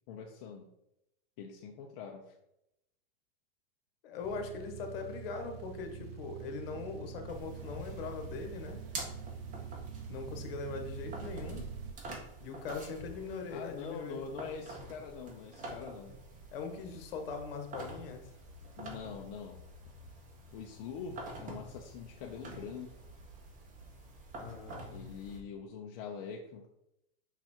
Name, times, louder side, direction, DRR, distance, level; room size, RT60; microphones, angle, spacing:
voice 1, 0.1-0.7 1.4-2.3 13.5-16.1 18.8-19.6 20.5-23.1 24.9-26.7, left 6 dB, 55° left, 1 dB, 0.9 m, -44 dB
voice 2, 4.0-8.8 10.0-11.7 12.4-14.2 16.5-18.3 24.4-25.1, left 4 dB, 70° left, 5 dB, 1.5 m, -41 dB
sound 1, 4.2-11.9, right 7 dB, 80° right, 0.6 m, -45 dB
sound 2, 7.3-25.4, right 2 dB, 25° right, 1.6 m, -48 dB
5.8 x 4.1 x 4.5 m, 0.83 s
supercardioid pair, 130°, 29 cm